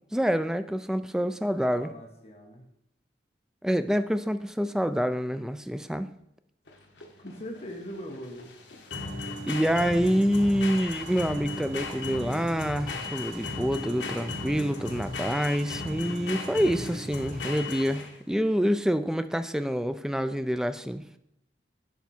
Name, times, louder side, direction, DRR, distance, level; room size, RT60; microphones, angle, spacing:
voice 1, 0.1-1.9 3.6-6.1 9.5-21.0, equal, 5° right, 11 dB, 0.3 m, -27 dB
voice 2, 1.6-2.7 7.2-8.5, equal, 35° left, 2 dB, 1.1 m, -41 dB
sound 1, 6.7-18.3, left 2 dB, 75° left, 1.2 m, -36 dB
sound 2, 9.5-15.5, right 1 dB, 35° right, 0.9 m, -49 dB
10.5 x 3.5 x 4.3 m, 0.79 s
head